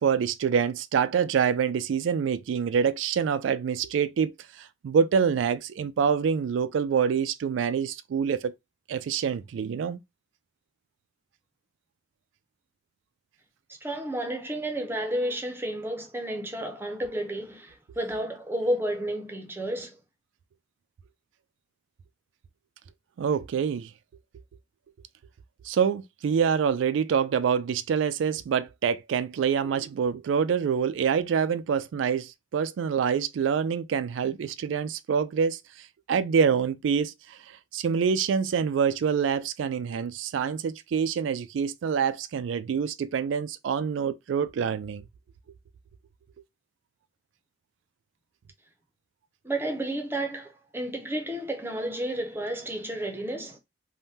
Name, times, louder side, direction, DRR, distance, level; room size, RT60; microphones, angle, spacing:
voice 1, 0.0-8.5 8.9-10.0 23.2-23.9 25.6-35.6 36.1-37.4 37.7-45.0, right 7 dB, 85° right, 0.3 m, -26 dB
voice 2, 13.8-19.9 49.4-53.6, right 1 dB, 10° right, 0.6 m, -31 dB
3.4 x 2.2 x 2.7 m
head